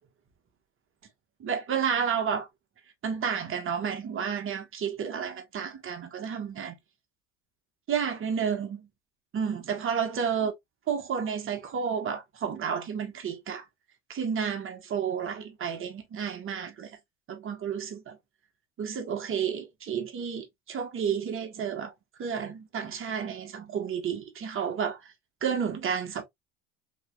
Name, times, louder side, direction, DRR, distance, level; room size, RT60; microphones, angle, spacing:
voice 1, 1.4-2.5 3.0-6.7 7.9-8.9 9.3-10.5 10.9-13.7 14.1-16.9 17.3-18.2 18.8-21.9 22.2-25.0 25.4-26.2, right 7 dB, 35° right, 1.3 m, -31 dB
4.0 x 3.0 x 2.3 m
hypercardioid pair, 80°, 35 cm